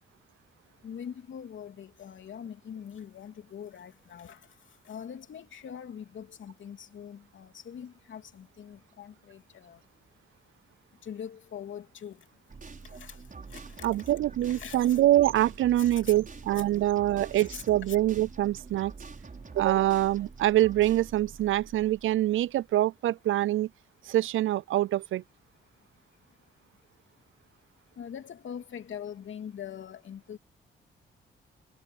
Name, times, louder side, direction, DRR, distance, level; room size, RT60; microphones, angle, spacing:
voice 1, 0.7-10.0 10.7-14.1 14.4-15.0 15.8-16.1 17.3-18.0 25.7-27.1 27.4-27.5 27.8-30.4, left 8 dB, 70° left, 3.1 m, -44 dB
sound 1, 12.5-22.4, right 4 dB, 40° right, 6.3 m, -46 dB
voice 2, 13.8-18.9 19.5-23.7 24.0-25.2, right 14 dB, 75° right, 0.6 m, -25 dB
supercardioid pair, 50°, 21 cm